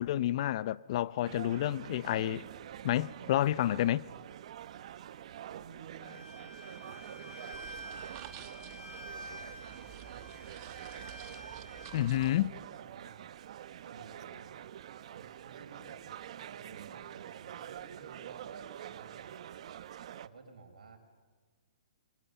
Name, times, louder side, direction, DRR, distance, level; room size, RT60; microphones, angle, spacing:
voice 1, 0.0-2.4 2.8-4.0 11.9-12.5, left 13 dB, 50° left, 0.6 m, -29 dB
sound 1, 1.3-20.3, right 10 dB, 55° right, 0.8 m, -47 dB
voice 2, 5.5-6.4 6.6-10.9 11.3-12.0 12.7-13.3 13.7-14.6 15.1-21.0, right 4 dB, 85° right, 5.0 m, -54 dB
Bowed string instrument, 6.0-12.0, equal, 80° left, 5.7 m, -49 dB
sound 2, 7.5-12.5, right 13 dB, 35° right, 1.1 m, -52 dB
24.5 x 23.5 x 7.0 m
hypercardioid pair, 145°, 4 cm